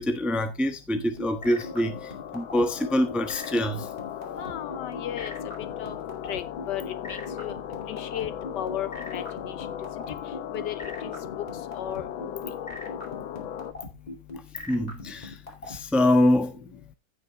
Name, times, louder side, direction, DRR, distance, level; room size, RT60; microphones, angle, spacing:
voice 1, 0.0-3.9 14.7-15.3 15.7-16.5, left 1 dB, ahead, 0.7 m, -25 dB
sound 1, 0.9-15.8, left 2 dB, 20° left, 2.4 m, -39 dB
sound 2, 1.4-13.7, left 10 dB, 85° left, 1.6 m, -37 dB
voice 2, 4.4-5.3 5.8-5.9 6.3-7.6 7.9-9.6 10.5-11.1 11.7-12.4, left 11 dB, 70° left, 1.2 m, -35 dB
15.0 x 6.1 x 3.0 m
omnidirectional pair, 2.1 m